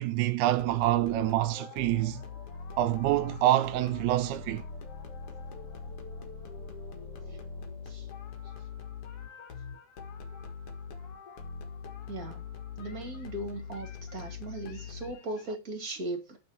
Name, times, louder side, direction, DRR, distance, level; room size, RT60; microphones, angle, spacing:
voice 1, 0.0-2.2 2.8-4.6 15.3-15.6, right 15 dB, 80° right, 2.5 m, -27 dB
sound 1, 0.6-15.5, left 5 dB, 55° left, 1.7 m, -42 dB
voice 2, 12.1-12.5 12.8-16.4, right 2 dB, 30° right, 1.7 m, -38 dB
7.8 x 6.2 x 5.6 m
omnidirectional pair, 4.5 m